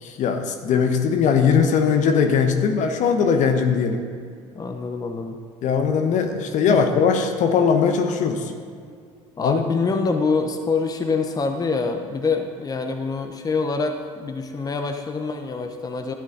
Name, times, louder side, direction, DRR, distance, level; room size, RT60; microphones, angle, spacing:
voice 1, 0.2-4.0 5.6-8.5 9.4-9.6, left 6 dB, 50° left, 6 dB, 1.1 m, -20 dB
voice 2, 4.5-5.4 6.7-6.8 9.4-16.1, left 4 dB, 20° left, 5 dB, 1.0 m, -25 dB
12.5 x 8.9 x 4.1 m, 2.2 s
hypercardioid pair, 70°, 17 cm